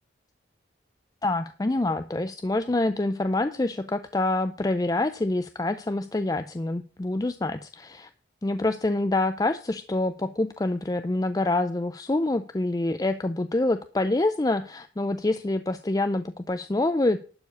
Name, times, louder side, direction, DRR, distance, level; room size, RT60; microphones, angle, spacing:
voice 1, 1.2-8.1 8.4-17.2, left 2 dB, 20° left, 10 dB, 0.4 m, -26 dB
12.0 x 4.7 x 8.0 m, 0.38 s
head